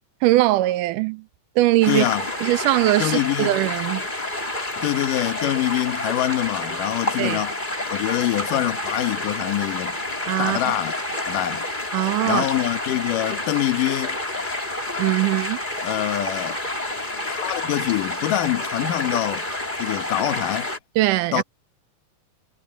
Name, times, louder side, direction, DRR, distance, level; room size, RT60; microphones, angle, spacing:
voice 1, 0.2-1.2 1.6-2.1 2.4-4.0 7.2-7.4 10.3-10.6 11.9-12.5 15.0-15.6 21.0-21.4, right 17 dB, 80° right, 1.9 m, -21 dB
sound 1, 1.8-20.8, left 1 dB, 15° left, 3.3 m, -29 dB
voice 2, 1.9-2.2 3.0-3.6 4.8-7.6 7.9-10.0 10.4-10.9 11.3-11.7 12.2-14.2 15.8-16.6 17.3-19.5 19.8-20.7 21.3-21.4, left 13 dB, 70° left, 2.7 m, -25 dB
omnidirectional pair, 4.1 m